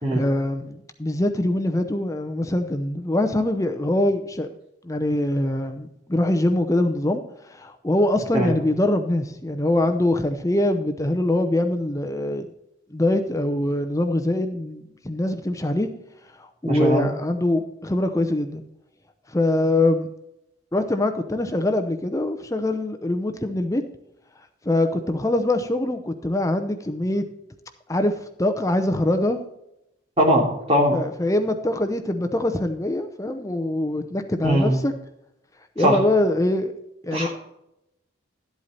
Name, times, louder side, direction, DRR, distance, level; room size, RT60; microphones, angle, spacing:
voice 1, 0.1-4.5 4.8-12.5 12.9-15.9 16.4-18.6 19.3-20.1 20.7-23.8 24.6-27.2 27.9-29.4 30.9-34.9 35.8-36.7 37.0-37.3, left 1 dB, 15° left, 7 dB, 0.6 m, -23 dB
voice 2, 16.6-17.1 30.2-31.0 34.4-34.8 35.8-36.0 37.1-37.3, equal, 30° right, -1 dB, 2.8 m, -20 dB
12.0 x 8.2 x 4.2 m, 0.85 s
head